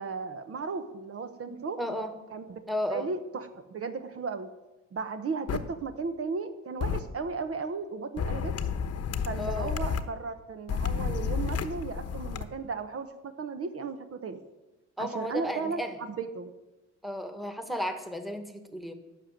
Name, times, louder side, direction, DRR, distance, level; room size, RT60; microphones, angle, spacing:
voice 1, 0.0-1.8 2.3-2.6 2.9-4.5 4.9-8.5 9.2-14.4 15.0-16.5, right 4 dB, 50° right, 8 dB, 1.0 m, -35 dB
voice 2, 1.5-2.1 2.7-3.1 9.4-9.8 15.0-16.0 17.0-18.9, equal, ahead, 7 dB, 1.5 m, -34 dB
sound 1, 5.5-5.6 6.8-7.0 8.2-10.0 10.7-12.4, left 6 dB, 55° left, 1.0 m, -31 dB
12.5 x 6.1 x 9.2 m, 1.1 s
cardioid pair, 90°, 30 cm